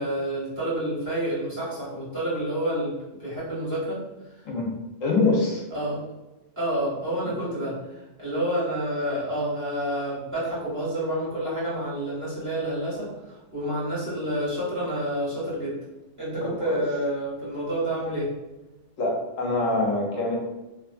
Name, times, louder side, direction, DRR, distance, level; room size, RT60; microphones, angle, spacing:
voice 1, 0.0-4.0 5.7-6.0 6.6-15.8 16.2-18.3, right 1 dB, 15° right, -10 dB, 1.4 m, -29 dB
voice 2, 5.0-5.6 16.4-16.8 19.0-20.4, left 2 dB, 80° left, -2 dB, 1.1 m, -24 dB
2.6 x 2.4 x 2.4 m, 1.0 s
omnidirectional pair, 1.3 m